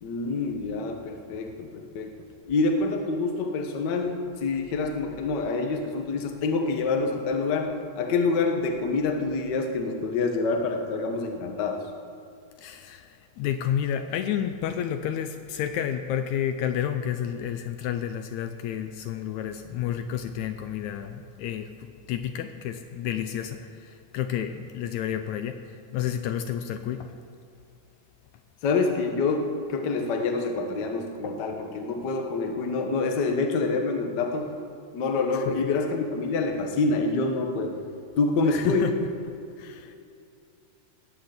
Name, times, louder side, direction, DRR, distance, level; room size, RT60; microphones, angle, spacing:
voice 1, 0.0-2.1 2.5-11.8 28.6-34.6 34.9-37.8 38.2-38.9, left 3 dB, 55° left, 4 dB, 1.2 m, -26 dB
voice 2, 12.6-27.2 35.3-35.5 38.5-39.0 39.6-39.9, left 9 dB, 80° left, 8 dB, 1.8 m, -31 dB
19.0 x 6.3 x 8.0 m, 2.5 s
omnidirectional pair, 3.6 m